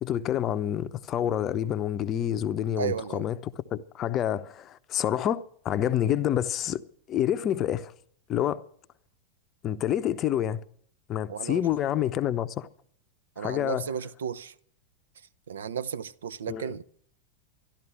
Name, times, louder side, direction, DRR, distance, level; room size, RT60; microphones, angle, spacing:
voice 1, 0.0-6.8 7.1-7.9 8.3-8.6 9.6-10.6 11.1-12.7 13.4-13.9 16.5-16.7, left 11 dB, 30° left, 0.6 m, -28 dB
voice 2, 2.8-3.3 11.3-11.6 13.4-14.5 15.5-16.8, right 8 dB, 65° right, 0.5 m, -34 dB
12.5 x 12.0 x 7.6 m
figure-of-eight pair, 90°, 0 cm